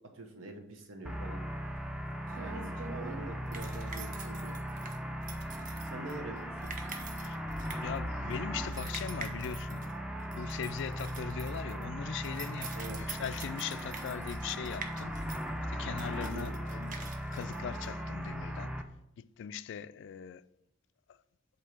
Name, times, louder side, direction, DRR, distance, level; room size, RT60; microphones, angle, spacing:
voice 1, 0.1-1.4 2.3-4.6 5.8-6.7 12.7-13.0 16.2-16.5, right 2 dB, 80° right, 1.1 m, -45 dB
sound 1, 1.0-18.8, equal, 5° right, 0.4 m, -38 dB
sound 2, 1.6-18.3, right 5 dB, 45° right, 0.8 m, -47 dB
voice 2, 2.5-2.8 7.2-7.4 7.8-9.9 10.3-15.2 15.7-18.8 19.2-20.4 21.1-21.2, left 8 dB, 65° left, 0.3 m, -40 dB
7.9 x 2.8 x 5.8 m
head